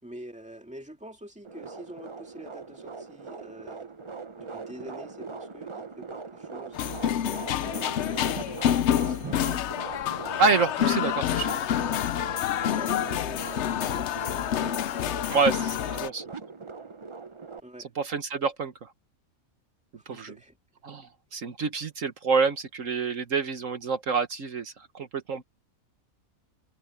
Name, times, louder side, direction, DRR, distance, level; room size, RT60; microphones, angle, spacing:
voice 1, 0.0-3.9 4.4-6.8 7.5-8.5 9.0-9.6 12.8-14.8 17.6-17.9 20.0-20.6, right 1 dB, 5° right, 2.2 m, -46 dB
sound 1, 1.4-17.6, right 4 dB, 30° right, 0.7 m, -41 dB
sound 2, 6.7-16.1, left 10 dB, 65° left, 0.8 m, -28 dB
sound 3, 7.3-11.1, right 1 dB, 85° right, 8.0 m, -55 dB
voice 2, 10.4-11.5 15.3-16.2 18.0-18.9 20.1-20.3 20.8-25.4, right 5 dB, 65° right, 1.6 m, -27 dB
omnidirectional pair, 1.5 m